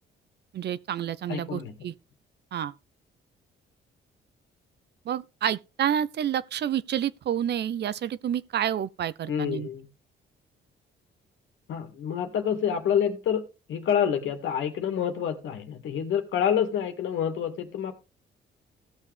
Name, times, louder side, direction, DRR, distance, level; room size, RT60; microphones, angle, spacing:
voice 1, 0.5-1.9 2.5-2.7 5.1-9.7, right 10 dB, 60° right, 0.7 m, -29 dB
voice 2, 1.3-1.8 9.3-9.9 11.7-17.9, left 8 dB, 75° left, 2.1 m, -28 dB
16.5 x 6.5 x 3.4 m
cardioid pair, 90°, 20 cm